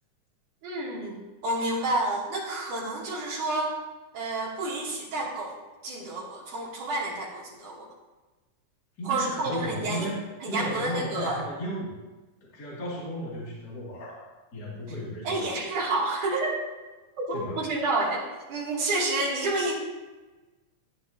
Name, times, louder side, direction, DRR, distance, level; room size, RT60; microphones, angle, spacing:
voice 1, 0.6-3.8 4.1-7.9 9.0-10.1 10.4-11.4 14.9-15.0 15.2-16.6 17.2-19.7, right 2 dB, 70° right, -6 dB, 4.6 m, -29 dB
voice 2, 9.0-10.2 10.5-12.0 12.4-15.5 17.3-17.7, equal, 30° left, -7 dB, 3.1 m, -35 dB
16.5 x 9.9 x 3.0 m, 1.2 s
omnidirectional pair, 3.7 m